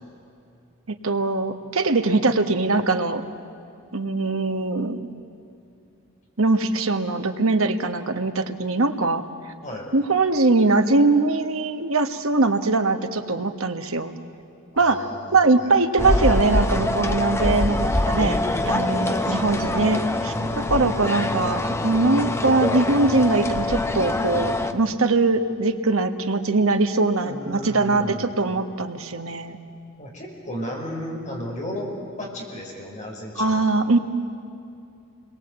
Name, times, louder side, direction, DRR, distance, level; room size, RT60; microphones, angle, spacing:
voice 1, 1.0-3.2 3.9-5.1 6.4-9.2 9.9-14.1 14.8-29.6 33.4-34.0, right 3 dB, 80° right, 6 dB, 1.4 m, -22 dB
voice 2, 14.8-16.1 19.0-19.7 20.3-20.9 27.2-28.3 30.0-31.9 32.2-33.6, equal, 35° left, -1 dB, 5.4 m, -34 dB
sound 1, 16.0-24.7, left 1 dB, 15° left, 0.9 m, -24 dB
28.0 x 21.5 x 8.2 m, 2.6 s
head